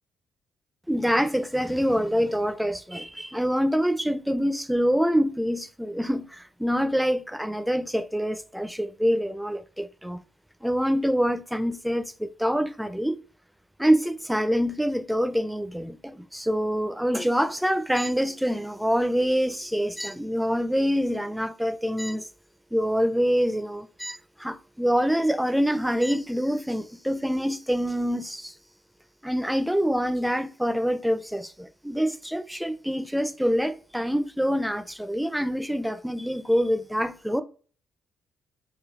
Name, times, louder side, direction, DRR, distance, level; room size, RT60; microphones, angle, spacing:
voice 1, 0.9-10.2 10.6-13.2 13.8-22.3 22.7-28.5 29.2-37.4, equal, ahead, 0.4 m, -25 dB
5.1 x 2.3 x 3.6 m
cardioid pair, 90°, 0 cm